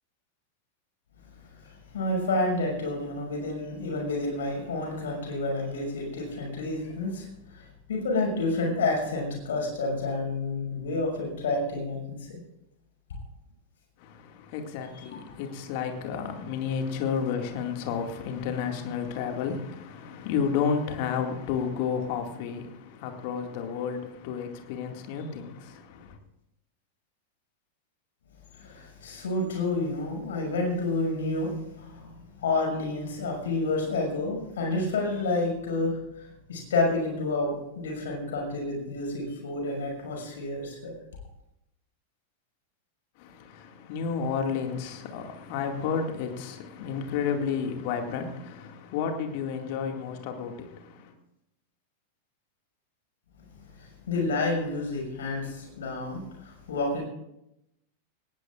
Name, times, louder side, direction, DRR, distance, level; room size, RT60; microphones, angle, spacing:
voice 1, 1.4-12.4 15.0-15.2 28.5-40.9 53.7-57.0, left 2 dB, 60° left, 6.0 m, -30 dB
voice 2, 14.0-26.2 43.2-51.1, left 6 dB, 45° left, 2.1 m, -31 dB
19.5 x 18.5 x 2.5 m
figure-of-eight pair, 90°, 0 cm